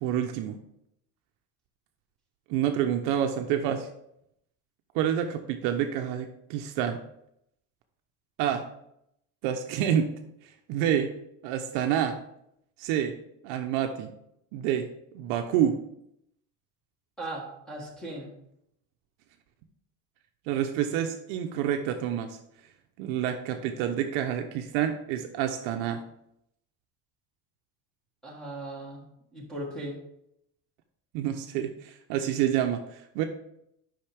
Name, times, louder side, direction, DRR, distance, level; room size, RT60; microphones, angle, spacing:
voice 1, 0.0-0.6 2.5-3.9 4.9-7.0 8.4-8.7 9.4-11.1 11.4-12.2 12.8-13.2 13.4-14.1 14.5-15.8 20.5-22.4 23.0-26.1 31.1-33.2, right 9 dB, 60° right, 5 dB, 0.7 m, -28 dB
voice 2, 17.2-18.3 28.2-29.0 29.3-30.0, right 1 dB, ahead, -2 dB, 1.4 m, -38 dB
8.7 x 5.6 x 3.4 m, 0.76 s
cardioid pair, 175°, 37 cm